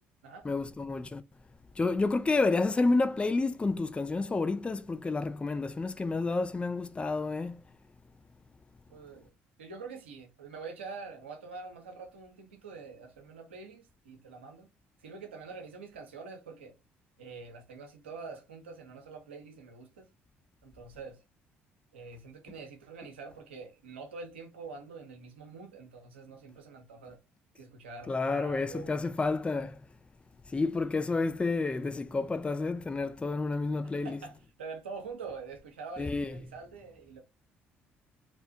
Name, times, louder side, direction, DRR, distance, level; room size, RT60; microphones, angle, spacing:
voice 1, 0.4-1.2 1.8-7.6 28.1-29.8 30.5-34.2 36.0-36.3, left 3 dB, 20° left, 0.3 m, -30 dB
voice 2, 8.9-9.3 9.6-14.7 15.0-16.8 17.2-20.1 20.6-21.2 21.9-27.2 27.6-29.0 33.8-37.2, right 4 dB, 90° right, 0.6 m, -45 dB
2.7 x 2.1 x 2.5 m
hypercardioid pair, 50°, 6 cm